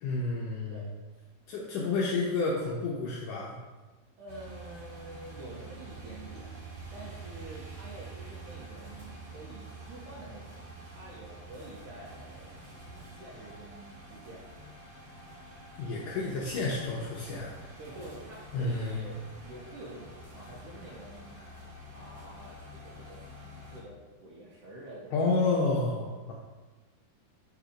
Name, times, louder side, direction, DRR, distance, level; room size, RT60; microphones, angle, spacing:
voice 1, 0.0-0.8 1.5-3.6 15.8-17.5 18.5-19.0 25.1-26.3, left 3 dB, 75° left, -3 dB, 1.9 m, -30 dB
voice 2, 4.2-14.4 17.8-19.2 19.4-21.4 21.9-25.1, right 2 dB, 75° right, -4 dB, 2.0 m, -48 dB
sound 1, 4.3-23.8, right 2 dB, 50° right, 2.0 m, -47 dB
7.2 x 4.0 x 5.0 m, 1.3 s
omnidirectional pair, 4.5 m